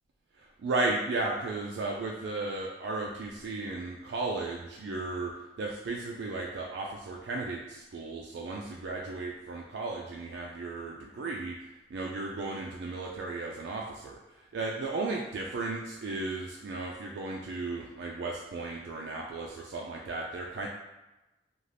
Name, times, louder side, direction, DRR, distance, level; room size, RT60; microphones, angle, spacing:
voice 1, 0.4-5.3 5.6-14.2 14.5-20.7, right 3 dB, 80° right, -1 dB, 0.3 m, -35 dB
2.5 x 2.4 x 3.2 m, 1.0 s
head